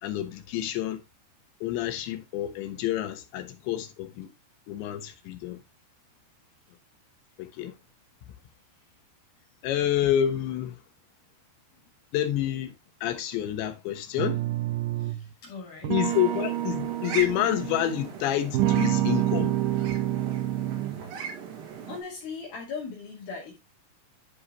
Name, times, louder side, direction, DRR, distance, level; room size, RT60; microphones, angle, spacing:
voice 1, 0.0-1.0 1.6-4.3 4.7-5.6 7.4-7.7 9.6-10.8 12.1-12.7 13.0-14.4 15.9-19.6, left 12 dB, 85° left, 3.4 m, -28 dB
sound 1, 14.2-15.3 15.8-18.1 18.5-21.1, right 13 dB, 85° right, 1.8 m, -28 dB
voice 2, 15.0-15.9 21.9-23.6, left 5 dB, 60° left, 4.0 m, -39 dB
sound 2, 16.1-22.0, right 6 dB, 60° right, 3.7 m, -39 dB
11.5 x 5.6 x 2.9 m
omnidirectional pair, 5.1 m